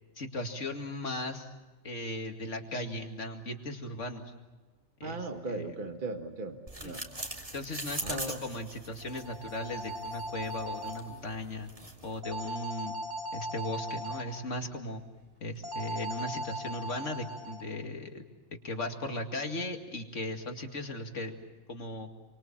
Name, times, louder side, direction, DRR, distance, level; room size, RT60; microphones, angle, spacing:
voice 1, 0.2-1.5 1.8-4.2 5.0-5.8 6.8-7.0 7.5-11.7 12.0-13.0 13.3-15.0 15.4-18.2 18.6-21.4 21.7-22.1, left 1 dB, 75° left, 4 dB, 2.6 m, -37 dB
voice 2, 5.0-7.0 8.0-8.4, right 2 dB, 45° right, 6 dB, 1.7 m, -38 dB
sound 1, 6.7-12.2, right 1 dB, 30° right, 2.5 m, -42 dB
sound 2, 9.0-11.0 12.2-14.2 15.6-17.6, equal, 65° right, 4.4 m, -38 dB
28.5 x 24.0 x 7.4 m, 1.2 s
omnidirectional pair, 1.3 m